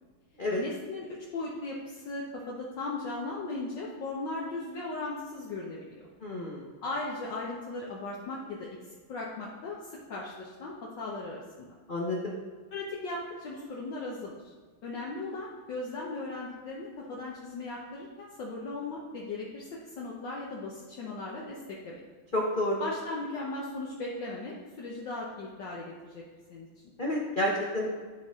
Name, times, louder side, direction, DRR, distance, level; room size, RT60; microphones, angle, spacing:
voice 1, 0.6-6.0 6.8-8.7 9.1-11.7 12.7-14.5 14.8-22.0 22.8-26.2 26.5-26.8, left 2 dB, 65° left, -4 dB, 1.5 m, -37 dB
voice 2, 6.2-6.7 11.9-12.3 22.3-22.8 27.0-27.9, left 1 dB, 90° left, -3 dB, 0.4 m, -29 dB
12.0 x 4.1 x 3.6 m, 1.5 s
omnidirectional pair, 2.3 m